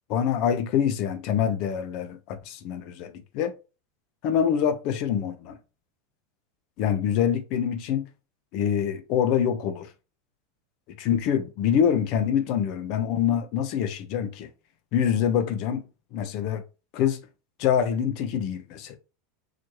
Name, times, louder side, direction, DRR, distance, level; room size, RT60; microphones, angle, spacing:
voice 1, 0.1-3.5 4.2-5.6 6.8-8.0 8.5-9.9 11.0-14.5 14.9-15.8 16.1-16.6 16.9-17.2 17.6-19.0, left 8 dB, 55° left, 0.7 m, -25 dB
4.1 x 3.0 x 3.0 m
supercardioid pair, 115°, 0 cm